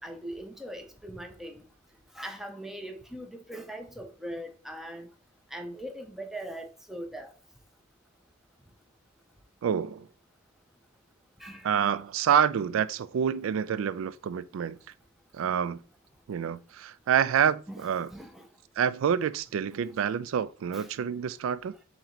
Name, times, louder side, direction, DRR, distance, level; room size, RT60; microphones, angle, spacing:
voice 1, 0.0-1.7 2.1-5.1 5.5-7.3 11.4-11.9 17.7-18.5 19.8-20.0 20.7-20.9, right 1 dB, ahead, 0.5 m, -41 dB
voice 2, 9.6-10.1 11.6-14.8 15.3-15.8 16.3-18.1 18.8-21.7, right 8 dB, 75° right, 0.3 m, -27 dB
4.0 x 2.8 x 4.3 m
head